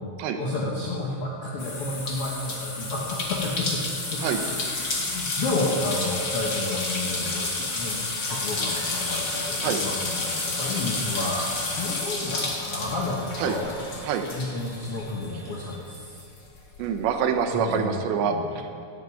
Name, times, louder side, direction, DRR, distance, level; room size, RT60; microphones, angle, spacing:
voice 1, 0.4-4.6 5.1-13.7 14.3-16.2 17.5-18.5, left 2 dB, 70° left, -4 dB, 1.4 m, -31 dB
sound 1, 1.6-15.6 15.9-17.2, left 2 dB, 45° left, 1.5 m, -30 dB
sound 2, 4.3-15.7, left 1 dB, 90° left, 4.2 m, -52 dB
voice 2, 16.8-18.8, right 7 dB, 80° right, 6 dB, 3.2 m, -26 dB
18.0 x 12.0 x 4.9 m, 2.4 s
omnidirectional pair, 5.1 m